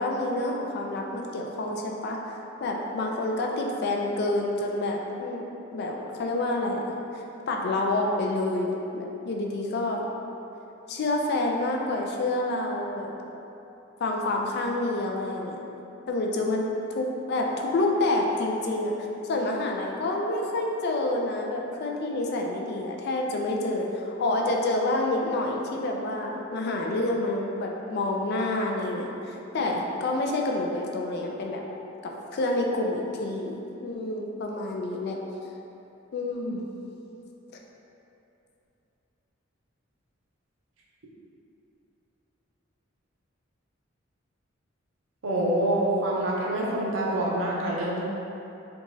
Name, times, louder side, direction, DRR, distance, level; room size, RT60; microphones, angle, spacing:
voice 1, 0.0-5.4 5.7-6.8 7.1-10.0 10.9-13.1 14.0-15.6 16.1-16.6 16.9-18.9 19.2-31.6 32.3-35.2 36.1-36.7, left 2 dB, 55° left, 0 dB, 0.4 m, -28 dB
voice 2, 45.2-48.0, right 1 dB, 75° right, -5 dB, 0.6 m, -26 dB
3.4 x 2.9 x 2.6 m, 2.9 s
head